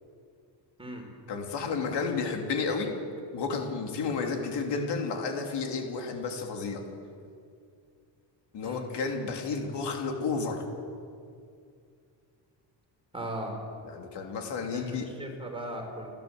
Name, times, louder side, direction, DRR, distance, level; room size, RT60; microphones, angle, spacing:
voice 1, 1.3-2.9 3.3-6.8 8.5-10.6 13.8-15.1, left 4 dB, 65° left, 2 dB, 3.0 m, -31 dB
voice 2, 13.1-13.5 14.7-16.1, right 1 dB, 10° right, 2 dB, 3.9 m, -37 dB
29.5 x 12.0 x 7.8 m, 2.4 s
cardioid pair, 145°, 44 cm